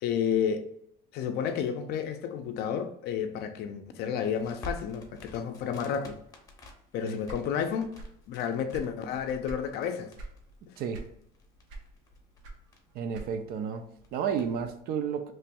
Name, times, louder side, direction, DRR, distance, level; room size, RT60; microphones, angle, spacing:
voice 1, 0.0-0.7 1.1-6.2 6.9-7.9 8.3-10.1 10.7-10.8, left 7 dB, 60° left, 0.4 m, -31 dB
Crackle, 4.3-14.8, left 1 dB, 20° left, 0.7 m, -50 dB
sound 1, 7.2-8.3 8.5-9.7 10.1-10.4 10.9-11.4 11.7-13.6, right 2 dB, 75° right, 0.8 m, -43 dB
voice 2, 12.9-15.3, right 7 dB, 50° right, 0.4 m, -32 dB
3.1 x 2.2 x 4.2 m
cardioid pair, 145°, 19 cm